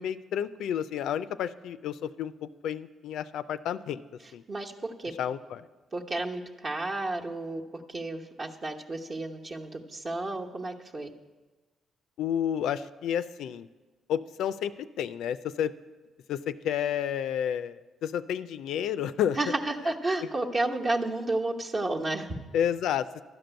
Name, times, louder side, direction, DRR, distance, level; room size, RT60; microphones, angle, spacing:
voice 1, 0.0-4.0 4.3-4.4 5.2-5.7 12.2-13.7 14.1-15.7 16.3-19.4 22.5-23.2, left 9 dB, 80° left, 13 dB, 0.3 m, -30 dB
voice 2, 4.5-5.1 5.9-11.1 19.4-22.4, right 2 dB, 40° right, 2 dB, 1.0 m, -32 dB
12.0 x 5.3 x 9.0 m, 1.3 s
cardioid pair, 90°, 0 cm